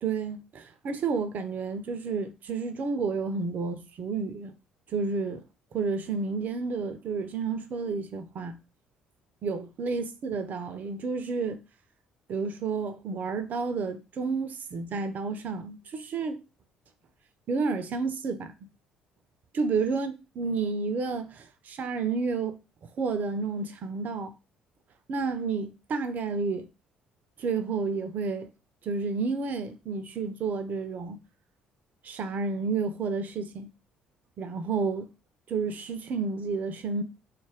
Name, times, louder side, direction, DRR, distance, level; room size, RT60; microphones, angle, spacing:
voice 1, 0.0-4.5 4.9-5.4 5.7-8.6 9.4-11.6 12.3-16.4 17.5-18.5 19.5-22.6 23.0-24.3 25.1-26.7 27.4-28.5 28.8-31.2 32.0-33.7 34.4-35.1 35.5-37.0, right 4 dB, 45° right, 0.5 m, -30 dB
2.4 x 2.1 x 3.4 m
figure-of-eight pair, 50°, 4 cm